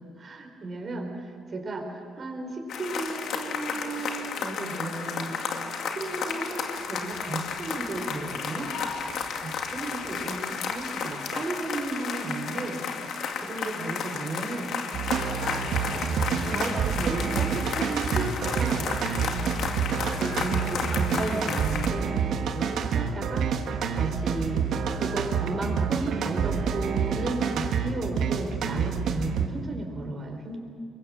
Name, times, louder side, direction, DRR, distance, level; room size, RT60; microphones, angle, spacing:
voice 1, 0.0-5.6 5.9-8.7 9.4-12.8 13.4-14.7 15.4-18.9 20.0-22.1 22.5-23.5 23.9-24.7 25.0-30.6, right 2 dB, 40° right, 3 dB, 4.5 m, -34 dB
sound 1, 2.7-21.9, left 6 dB, 75° left, 2.2 m, -33 dB
sound 2, 14.9-29.5, right 6 dB, 75° right, 1.6 m, -28 dB
24.5 x 22.0 x 7.4 m, 2.2 s
cardioid pair, 90°, 0 cm